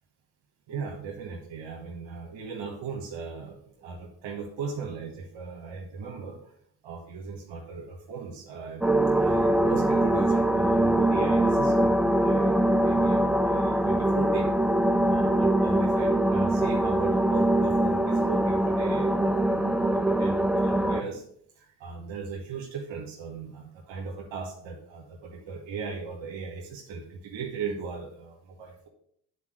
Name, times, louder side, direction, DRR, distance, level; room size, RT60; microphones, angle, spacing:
voice 1, 0.7-6.5 6.8-8.8 9.2-14.5 15.0-21.2 21.5-28.9, right 5 dB, 70° right, 0 dB, 1.3 m, -38 dB
sound 1, 8.8-21.0, right 1 dB, ahead, 0.3 m, -23 dB
8.7 x 4.2 x 6.3 m, 0.66 s
hypercardioid pair, 45°, 50 cm